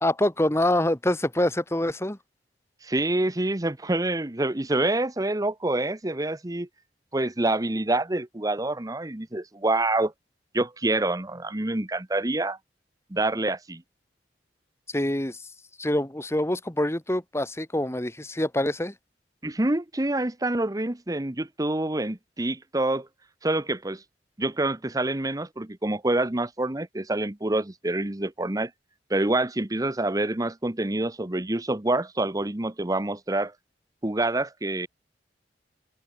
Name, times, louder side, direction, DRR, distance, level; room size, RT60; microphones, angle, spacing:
voice 1, 0.0-2.2 14.9-15.4 15.8-18.9, left 1 dB, 15° left, 1.6 m, -25 dB
voice 2, 2.8-6.7 7.1-10.1 10.5-12.6 13.1-13.8 19.4-23.1 23.4-24.0 24.4-28.7 29.1-33.5 34.0-34.9, right 2 dB, 20° right, 1.0 m, -27 dB
head